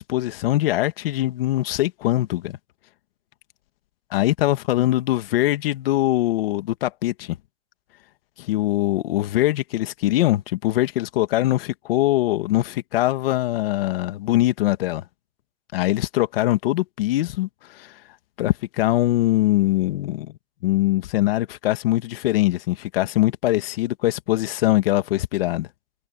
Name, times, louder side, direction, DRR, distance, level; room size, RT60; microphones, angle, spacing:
voice 1, 0.0-2.6 4.1-7.4 8.4-15.0 15.7-18.0 18.4-20.3 20.6-25.7, left 16 dB, 60° left, 2.0 m, -22 dB
supercardioid pair, 150°, 32 cm